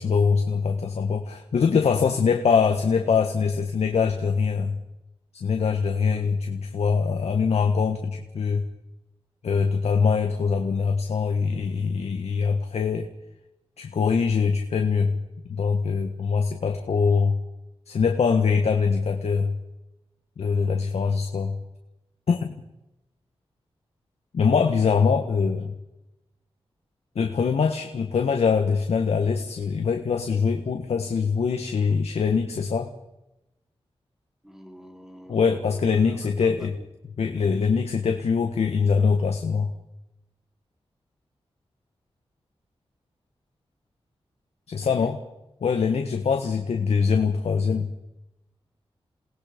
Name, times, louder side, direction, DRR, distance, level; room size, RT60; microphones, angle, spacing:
voice 1, 0.0-4.8 5.3-8.6 9.4-13.1 13.8-15.2 15.5-17.4 17.9-19.6 20.4-21.6 22.3-22.5 24.3-25.8 27.1-32.9 35.3-36.7 37.2-39.7 44.7-45.2 45.6-47.9, left 5 dB, 85° left, 5 dB, 1.6 m, -23 dB
voice 2, 6.0-6.3 34.4-36.7 44.8-45.1, equal, 5° right, 4 dB, 3.5 m, -47 dB
28.5 x 19.0 x 5.3 m, 0.92 s
wide cardioid pair, 100°, 10 cm